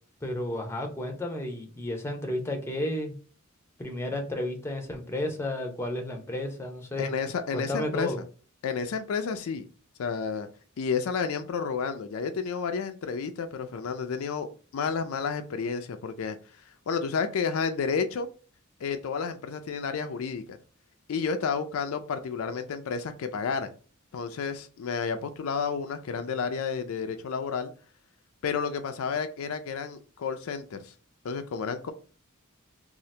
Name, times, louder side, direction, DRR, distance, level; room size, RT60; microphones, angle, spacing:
voice 1, 0.2-3.1 3.8-7.1 7.5-8.2, left 1 dB, 10° left, 3 dB, 0.6 m, -32 dB
voice 2, 7.0-8.1 8.6-9.7 10.0-10.5 10.8-14.5 14.7-16.4 16.9-18.3 18.8-20.6 21.1-23.7 24.1-27.7 28.4-30.9 31.2-31.9, left 5 dB, 80° left, 8 dB, 0.4 m, -31 dB
2.8 x 2.4 x 3.2 m, 0.39 s
head